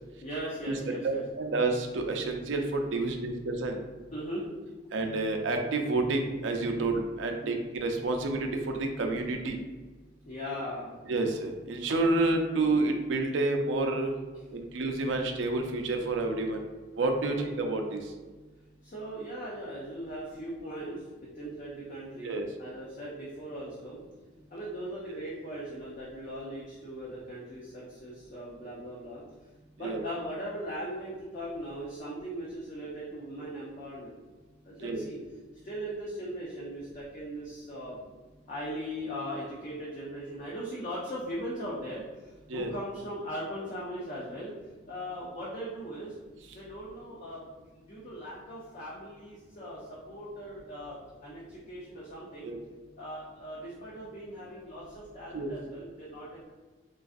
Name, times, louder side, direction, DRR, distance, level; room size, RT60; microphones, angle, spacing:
voice 1, 0.2-1.2 4.1-4.5 7.4-7.5 10.3-11.0 18.8-24.0 24.5-29.2 29.8-34.1 34.6-35.2 35.6-38.0 38.5-44.5 44.8-46.2 46.5-47.5 47.7-52.5 53.0-56.4, equal, 45° left, -5 dB, 0.6 m, -39 dB
voice 2, 1.0-3.8 4.9-7.6 7.8-9.6 11.1-14.1 14.5-16.6 17.0-18.0 22.2-22.5 29.8-30.0 34.8-35.0 42.5-42.7 52.4-52.6 55.3-55.5, right 2 dB, 80° right, 3 dB, 0.4 m, -29 dB
3.8 x 2.4 x 2.5 m, 1.3 s
head